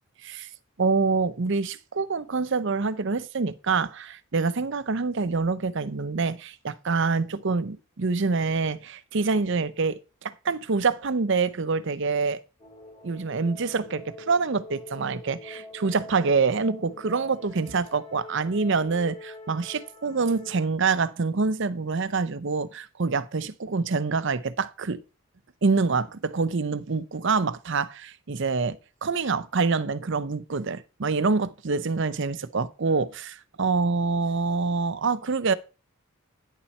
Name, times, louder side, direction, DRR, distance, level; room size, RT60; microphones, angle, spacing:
voice 1, 0.8-12.4 13.0-25.0 25.6-35.5, right 4 dB, 60° right, 0.6 m, -26 dB
sound 1, 12.6-20.6, left 2 dB, 30° left, 2.5 m, -45 dB
10.0 x 7.1 x 4.3 m
head